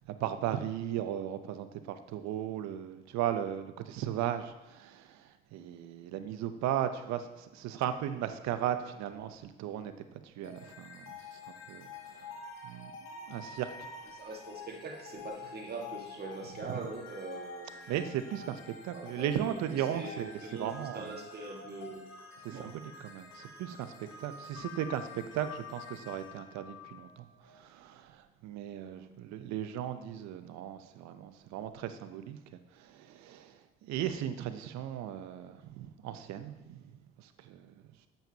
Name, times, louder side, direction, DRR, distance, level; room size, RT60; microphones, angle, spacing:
voice 1, 0.1-11.4 11.7-12.3 12.6-13.7 17.9-21.2 22.4-36.9 37.2-37.7, right 10 dB, 70° right, 10 dB, 0.7 m, -37 dB
sound 1, 10.4-27.6, left 4 dB, 65° left, 1.8 m, -48 dB
voice 2, 14.1-17.9 18.9-22.0 22.5-22.7 28.7-29.1, right 3 dB, 35° right, 0 dB, 1.6 m, -43 dB
9.0 x 7.2 x 2.9 m, 1.1 s
supercardioid pair, 65°, 29 cm